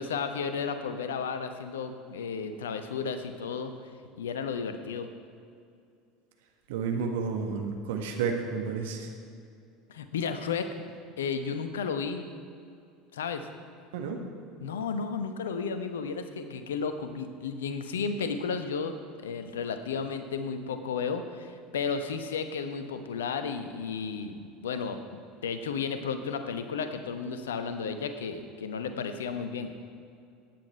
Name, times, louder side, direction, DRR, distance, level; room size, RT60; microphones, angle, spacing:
voice 1, 0.0-3.7 4.2-5.1 9.9-10.7 11.2-12.3 13.1-13.5 14.6-29.7, left 5 dB, 70° left, 9 dB, 0.9 m, -33 dB
voice 2, 6.7-9.1 13.9-14.2, right 5 dB, 60° right, 3 dB, 1.4 m, -31 dB
15.0 x 9.6 x 4.4 m, 2.4 s
figure-of-eight pair, 70°, 0 cm